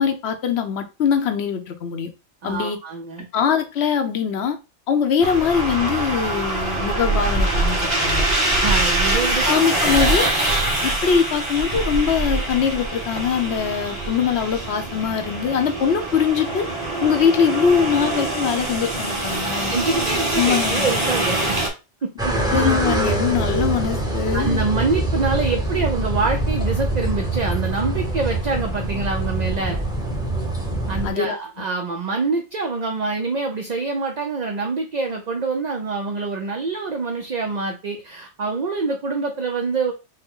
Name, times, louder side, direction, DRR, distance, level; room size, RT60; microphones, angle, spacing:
voice 1, 0.0-2.1 2.4-2.8 3.3-4.6 4.9-8.2 9.4-10.3 10.8-16.7 17.0-19.7 20.4-20.9 22.3-24.6 31.0-31.4, left 7 dB, 65° left, 1.0 m, -22 dB
voice 2, 2.4-3.3 8.5-9.5 9.8-9.9 19.7-21.6 22.0-22.3 24.3-29.8 30.9-39.9, right 4 dB, 45° right, 0.6 m, -25 dB
sound 1, 5.2-21.7, right 2 dB, 30° right, 1.3 m, -23 dB
sound 2, 22.2-31.1, right 1 dB, 5° right, 0.9 m, -24 dB
5.5 x 2.1 x 3.7 m
omnidirectional pair, 1.2 m